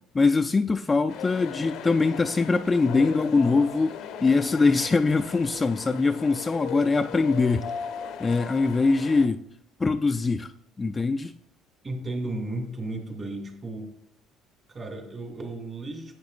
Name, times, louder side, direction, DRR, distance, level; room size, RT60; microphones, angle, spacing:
voice 1, 0.1-3.9 4.2-7.7 8.2-9.4 9.8-10.5 10.8-11.3, left 4 dB, 20° left, 0.3 m, -22 dB
sound 1, 1.1-9.3, left 8 dB, 70° left, 0.6 m, -38 dB
voice 2, 11.8-13.9 14.7-16.1, right 2 dB, 30° right, 2.2 m, -34 dB
10.5 x 8.1 x 2.4 m
cardioid pair, 120°, 0 cm